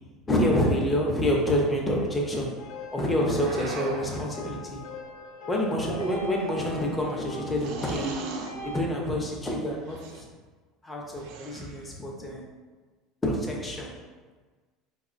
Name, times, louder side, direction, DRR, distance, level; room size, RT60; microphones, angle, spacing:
voice 1, 0.3-2.6 2.9-4.9 5.5-8.2 8.6-10.2 10.8-12.4 13.2-14.0, left 1 dB, 15° left, -1 dB, 0.4 m, -27 dB
sound 1, 2.6-8.8, left 1 dB, 85° left, 0.4 m, -41 dB
sound 2, 3.3-4.2 5.7-6.5 7.6-8.6 9.8-10.2 11.2-11.9, right 4 dB, 65° right, 0.3 m, -37 dB
4.3 x 2.0 x 2.4 m, 1.4 s
cardioid pair, 160°, 0 cm